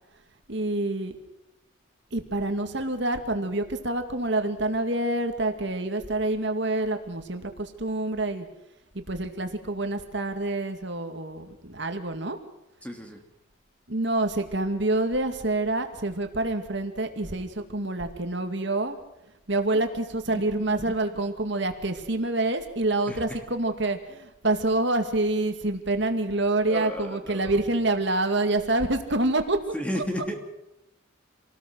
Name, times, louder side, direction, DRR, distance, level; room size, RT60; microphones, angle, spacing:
voice 1, 0.5-1.2 2.1-8.5 8.9-12.4 13.9-19.0 19.5-29.6 29.9-30.0, right 2 dB, 60° right, 6 dB, 2.3 m, -27 dB
voice 2, 12.8-13.2 20.3-20.4 20.8-20.9 23.1-23.2 26.7-27.5 29.7-30.3, equal, 5° left, 3 dB, 3.0 m, -33 dB
27.0 x 19.0 x 6.3 m, 0.87 s
head